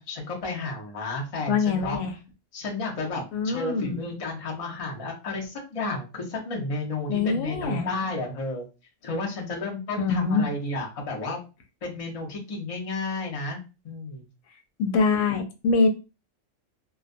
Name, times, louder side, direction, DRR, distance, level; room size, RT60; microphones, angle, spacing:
voice 1, 0.0-2.0 2.5-8.6 9.0-11.4 11.8-14.2, left 2 dB, 40° left, -1 dB, 0.6 m, -32 dB
voice 2, 1.5-2.2 3.3-4.1 7.1-7.9 10.0-10.5 14.8-15.9, left 4 dB, 90° left, 5 dB, 1.0 m, -24 dB
2.3 x 2.2 x 2.5 m, 0.30 s
omnidirectional pair, 1.3 m